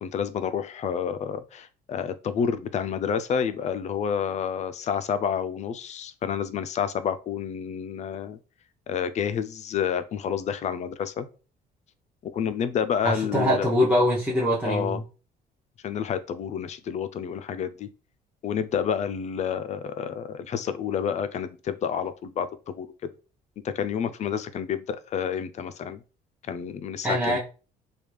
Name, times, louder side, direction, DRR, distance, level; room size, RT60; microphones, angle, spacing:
voice 1, 0.0-8.4 8.9-11.3 12.2-13.7 14.6-15.0 15.8-17.9 18.4-22.9 23.6-26.0 26.4-27.4, left 7 dB, 45° left, 12 dB, 0.4 m, -29 dB
voice 2, 13.0-15.0 27.0-27.4, equal, 5° right, -7 dB, 0.8 m, -23 dB
3.4 x 2.3 x 3.2 m, 0.35 s
cardioid pair, 110°, 17 cm